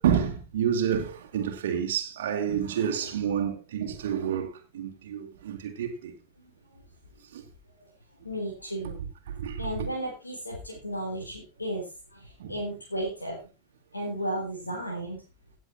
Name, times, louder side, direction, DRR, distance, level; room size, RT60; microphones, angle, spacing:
voice 1, 0.0-6.1 7.3-7.4 9.3-9.9 12.4-12.5, right 8 dB, 60° right, 1.9 m, -29 dB
voice 2, 6.4-6.8 7.8-7.9 8.2-9.0 9.6-13.4 13.9-15.2, right 1 dB, 80° left, 3.7 m, -34 dB
17.0 x 7.6 x 4.2 m
figure-of-eight pair, 90°, 0 cm